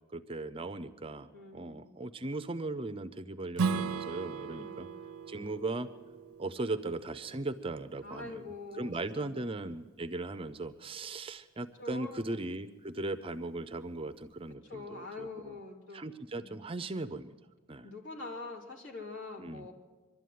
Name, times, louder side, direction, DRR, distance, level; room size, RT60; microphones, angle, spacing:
voice 1, 0.1-4.9 5.3-5.9 6.4-15.6 15.9-17.3 17.7-17.9 19.4-19.7, right 2 dB, 25° right, 11 dB, 0.5 m, -38 dB
voice 2, 1.3-1.9 4.4-4.9 8.0-9.3 11.8-12.2 14.6-16.0 16.4-16.6 17.8-19.7, left 3 dB, 55° left, -1 dB, 3.2 m, -44 dB
Strum, 3.5-8.7, right 5 dB, 90° right, 0.6 m, -37 dB
24.5 x 12.0 x 9.4 m, 1.4 s
head